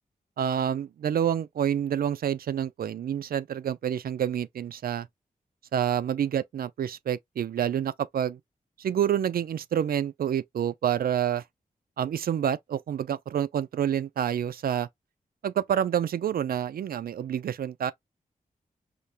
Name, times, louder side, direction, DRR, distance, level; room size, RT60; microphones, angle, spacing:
voice 1, 0.4-5.1 5.7-8.4 8.8-11.4 12.0-14.9 15.4-17.9, right 9 dB, 85° right, 0.4 m, -28 dB
4.9 x 2.2 x 2.7 m
wide cardioid pair, 110°, 15 cm